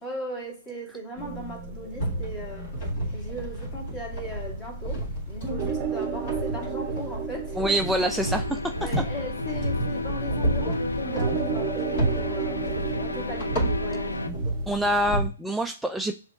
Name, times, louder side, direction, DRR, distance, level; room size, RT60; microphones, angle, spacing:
voice 1, 0.0-2.7 3.1-7.8 8.8-14.2, right 1 dB, 25° left, 0 dB, 2.1 m, -38 dB
sound 1, 1.2-15.3, right 5 dB, 30° right, 0.7 m, -35 dB
sound 2, 2.0-15.2, right 1 dB, 50° left, 2.2 m, -31 dB
voice 2, 7.6-8.9 14.7-16.1, right 1 dB, 5° right, 4 dB, 0.3 m, -26 dB
sound 3, 7.9-14.3, left 2 dB, 90° left, 0.4 m, -33 dB
7.1 x 2.9 x 2.4 m, 0.38 s
figure-of-eight pair, 125°, 0 cm